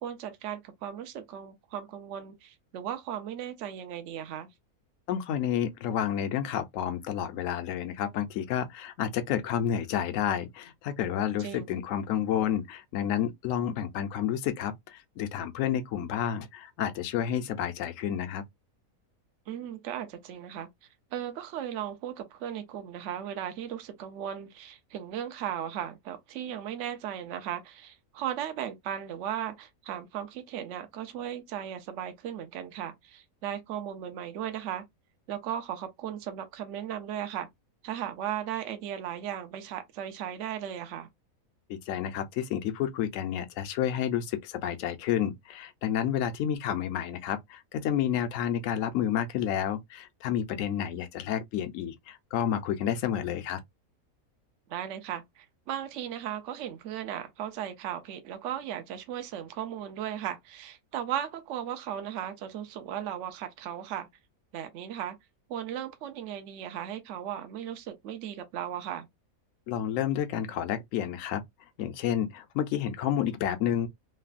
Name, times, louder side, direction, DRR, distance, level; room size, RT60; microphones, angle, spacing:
voice 1, 0.0-4.5 11.4-11.7 19.5-20.7 21.1-34.8 35.3-37.5 37.8-41.1 54.7-64.1 64.5-65.2 65.5-69.1, right 10 dB, 65° right, 0.8 m, -36 dB
voice 2, 5.1-18.4 41.7-53.6 69.7-71.4 71.8-73.9, left 9 dB, 70° left, 0.9 m, -30 dB
3.2 x 2.1 x 2.4 m
omnidirectional pair, 1.5 m